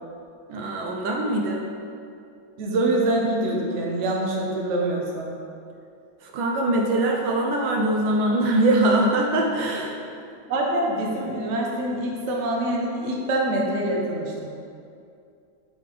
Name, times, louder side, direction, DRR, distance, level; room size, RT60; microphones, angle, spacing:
voice 1, 0.5-1.7 6.2-9.9, right 1 dB, 75° right, 1 dB, 1.3 m, -22 dB
voice 2, 2.6-5.3 10.5-14.5, right 1 dB, 50° right, -2 dB, 0.9 m, -25 dB
7.8 x 3.3 x 5.1 m, 2.5 s
omnidirectional pair, 2.2 m